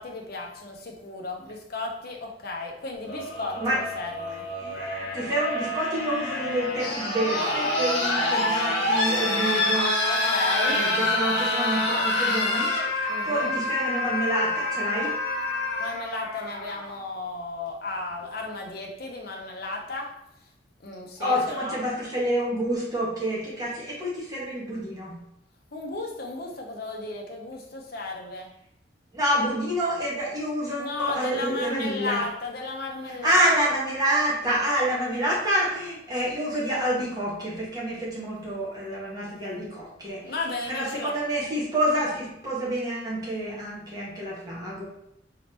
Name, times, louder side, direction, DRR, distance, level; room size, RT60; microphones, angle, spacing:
voice 1, 0.0-4.4 10.1-10.8 13.1-13.6 15.8-20.1 20.8-21.8 25.7-28.5 30.8-33.5 40.2-41.2, left 2 dB, 60° left, 1 dB, 0.9 m, -34 dB
sound 1, 3.0-17.0 18.2-18.3, left 2 dB, 80° left, 1.5 m, -27 dB
voice 2, 4.6-10.0 10.6-12.7 13.2-15.1 21.2-25.2 29.1-32.2 33.1-40.3 40.7-44.8, right 1 dB, 20° right, -5 dB, 1.6 m, -28 dB
4.3 x 3.8 x 2.9 m, 0.78 s
head